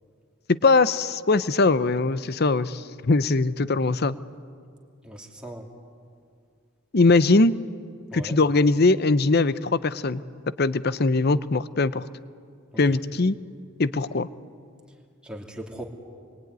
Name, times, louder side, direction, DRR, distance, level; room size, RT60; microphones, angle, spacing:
voice 1, 0.5-4.2 6.9-7.5 8.1-10.2 10.6-12.1 12.8-13.4 13.8-14.3, left 3 dB, 50° left, 15 dB, 0.7 m, -21 dB
voice 2, 5.0-5.7 8.1-8.4 12.9-13.0 15.2-15.8, right 1 dB, 5° right, 0 dB, 2.9 m, -38 dB
27.0 x 23.0 x 9.5 m, 2.3 s
head